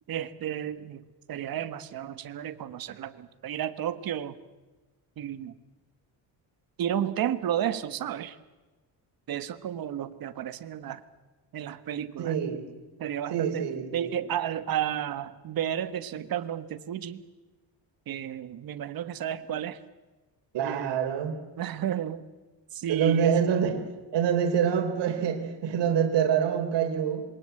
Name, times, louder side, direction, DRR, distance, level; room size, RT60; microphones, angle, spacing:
voice 1, 0.1-1.0 1.3-4.3 5.2-5.6 6.8-8.4 9.3-11.0 11.5-12.3 13.0-13.6 13.9-17.2 18.1-19.8 20.6-21.0 21.6-22.2 22.7-23.5, right 10 dB, 55° right, 12 dB, 1.4 m, -32 dB
voice 2, 12.2-12.7 13.3-14.1 20.5-21.3 22.9-23.8 24.1-27.3, right 8 dB, 75° right, 6 dB, 3.6 m, -26 dB
27.0 x 22.5 x 7.8 m, 1.2 s
cardioid pair, 150°, 42 cm